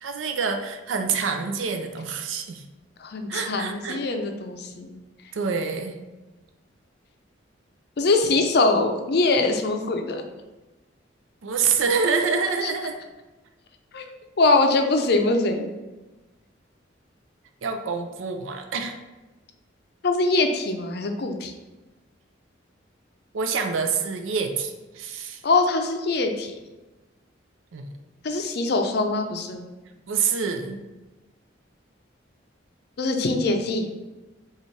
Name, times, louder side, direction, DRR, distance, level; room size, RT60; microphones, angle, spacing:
voice 1, 0.0-2.6 3.3-4.0 5.3-6.0 11.4-13.0 17.6-19.0 23.3-25.4 27.7-27.8 30.1-30.8, right 5 dB, 90° right, 5 dB, 0.5 m, -26 dB
voice 2, 3.0-4.9 8.0-10.2 12.6-12.7 13.9-14.1 14.4-15.7 20.0-21.5 25.4-26.5 28.2-29.6 33.0-33.9, left 3 dB, 55° left, 5 dB, 0.5 m, -23 dB
5.1 x 2.4 x 3.2 m, 1.1 s
head